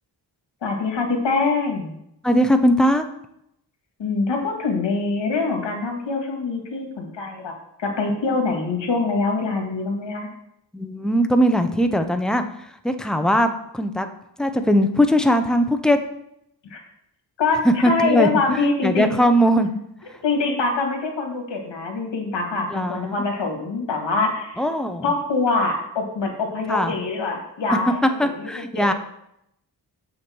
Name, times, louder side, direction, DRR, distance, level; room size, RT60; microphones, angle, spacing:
voice 1, 0.6-1.9 4.0-7.5 7.8-10.3 16.7-16.8 17.4-19.2 20.2-24.6 25.0-28.9, left 3 dB, 75° left, 2 dB, 2.0 m, -24 dB
voice 2, 2.2-3.1 10.7-14.1 14.4-16.0 17.6-19.7 22.7-23.3 24.6-25.1 26.7-26.9 28.2-28.9, equal, ahead, 7 dB, 0.5 m, -20 dB
6.9 x 6.4 x 4.4 m, 0.78 s
wide cardioid pair, 125°, 44 cm